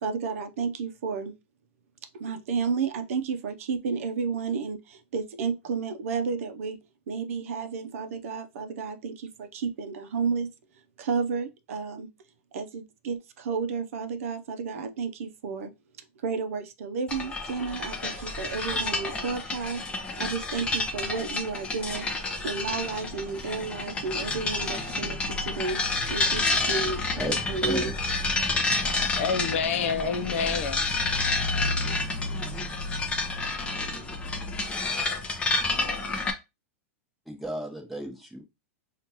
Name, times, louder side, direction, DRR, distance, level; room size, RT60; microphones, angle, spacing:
voice 1, 0.0-1.3 2.1-6.8 7.1-10.5 11.0-12.1 12.5-15.7 16.2-25.8 26.1-28.0, right 5 dB, 75° right, 0.6 m, -32 dB
sound 1, 17.1-36.3, left 3 dB, 15° left, 0.7 m, -29 dB
voice 2, 27.6-27.9 37.3-38.4, right 1 dB, ahead, 1.0 m, -34 dB
voice 3, 28.8-31.0, left 5 dB, 65° left, 0.6 m, -28 dB
4.4 x 2.4 x 2.8 m
hypercardioid pair, 140°, 8 cm